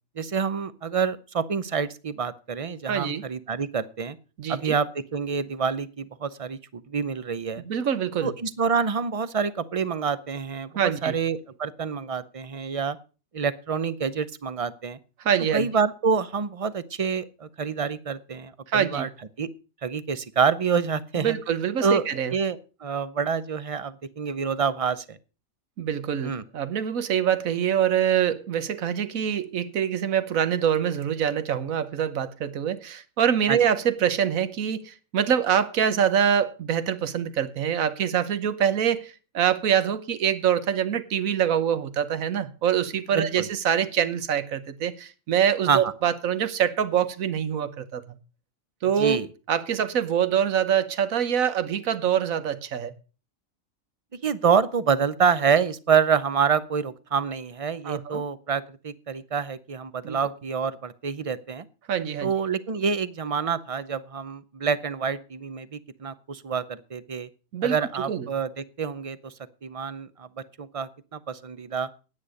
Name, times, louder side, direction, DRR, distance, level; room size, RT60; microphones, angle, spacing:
voice 1, 0.2-4.2 4.5-7.6 8.2-13.0 13.3-15.0 15.5-19.1 19.4-19.5 19.8-21.4 21.8-25.2 26.2-26.4 33.5-33.6 43.1-43.5 45.7-45.9 49.0-49.3 54.2-61.7 62.2-67.3 67.6-69.3 69.6-70.3 70.6-71.9, right 6 dB, 40° right, 0.5 m, -27 dB
voice 2, 2.9-3.2 4.4-4.8 7.6-8.3 10.7-11.2 15.2-15.7 18.7-19.1 21.1-22.3 25.8-48.0 48.8-49.2 49.5-52.9 57.8-58.2 60.0-60.2 61.9-62.3 67.5-67.8 68.1-68.2, right 9 dB, 90° right, 1.4 m, -25 dB
9.9 x 9.6 x 6.3 m
omnidirectional pair, 1.4 m